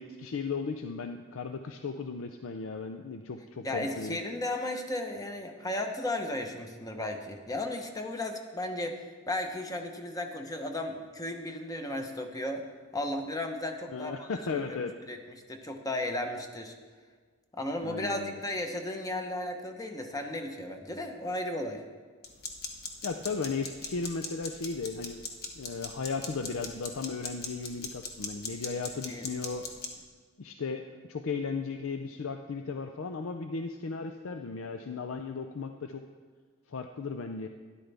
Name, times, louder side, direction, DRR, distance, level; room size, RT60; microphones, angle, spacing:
voice 1, 0.0-4.2 13.9-14.9 17.8-18.4 23.0-25.2 25.6-29.7 30.4-36.1 36.7-37.5, left 4 dB, 70° left, 6 dB, 0.5 m, -36 dB
voice 2, 3.6-9.0 9.3-12.6 12.9-14.3 15.1-15.2 15.5-16.7 17.5-21.8 29.1-29.2, left 1 dB, 15° left, 4 dB, 0.9 m, -34 dB
sound 1, 22.2-29.9, left 4 dB, 50° left, 1.2 m, -41 dB
13.0 x 11.0 x 3.4 m, 1.5 s
head